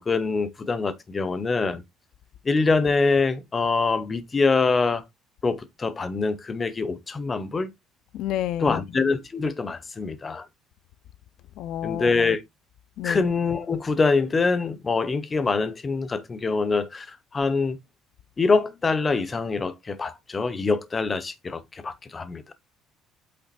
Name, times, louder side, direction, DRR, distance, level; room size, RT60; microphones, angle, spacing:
voice 1, 0.0-1.8 2.4-5.0 5.4-7.7 8.6-10.5 11.8-12.4 13.0-17.8 18.4-22.5, left 4 dB, 15° left, 0.8 m, -24 dB
voice 2, 8.1-8.8 11.6-12.1 13.0-13.2, left 11 dB, 55° left, 0.5 m, -29 dB
8.5 x 3.3 x 4.2 m
cardioid pair, 180°, 0 cm